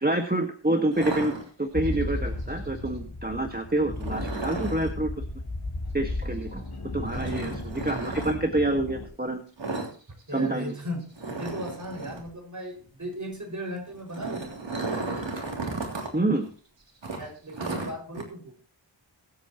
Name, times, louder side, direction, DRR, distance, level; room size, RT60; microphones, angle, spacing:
voice 1, 0.0-1.3 1.6-5.2 5.9-6.6 6.9-9.4 10.3-10.7 16.1-16.4, right 2 dB, 20° right, 4 dB, 1.6 m, -27 dB
sound 1, 0.9-1.9 4.0-4.9 7.1-8.3 9.6-9.9 10.2-10.4 10.7-10.8 11.2-12.3 13.9-16.1 16.4-16.5 17.0-18.2, right 3 dB, 65° right, 3.3 m, -34 dB
sound 2, 1.7-9.1, left 2 dB, 50° left, 3.5 m, -34 dB
voice 2, 7.1-7.5 10.3-11.1 11.4-14.6 17.2-18.6, equal, 40° right, 2 dB, 5.6 m, -36 dB
22.5 x 8.5 x 3.0 m, 0.40 s
wide cardioid pair, 60°, 46 cm